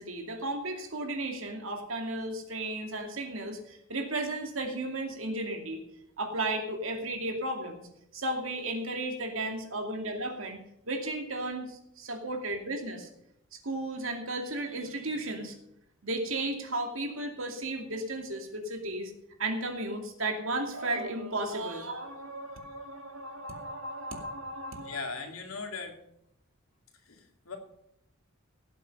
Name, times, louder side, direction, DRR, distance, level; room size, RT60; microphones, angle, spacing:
voice 1, 0.0-5.8 6.2-7.9 8.1-10.6 10.9-13.1 13.5-15.6 16.0-19.1 19.4-25.1, right 2 dB, 70° right, 3 dB, 2.5 m, -34 dB
voice 2, 24.8-26.0 27.0-27.6, left 4 dB, 85° left, 3 dB, 2.5 m, -39 dB
17.5 x 7.6 x 5.4 m, 0.77 s
head